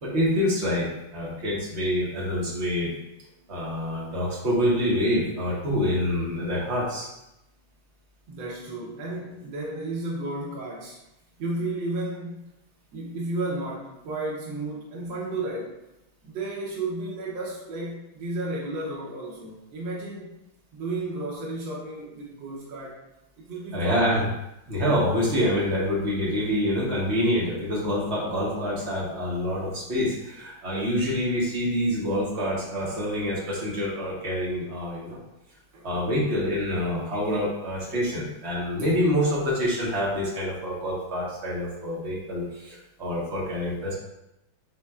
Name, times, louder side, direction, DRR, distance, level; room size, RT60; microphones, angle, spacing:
voice 1, 0.0-2.9 3.5-7.1 23.7-24.3 24.7-35.2 35.8-43.9, equal, 40° right, -5 dB, 1.1 m, -26 dB
voice 2, 8.3-11.0 11.4-12.5 12.9-15.8 16.2-20.4 20.7-23.0 23.4-24.1 35.7-36.0, right 2 dB, 70° right, -5 dB, 1.6 m, -33 dB
5.6 x 3.6 x 2.3 m, 0.90 s
omnidirectional pair, 2.2 m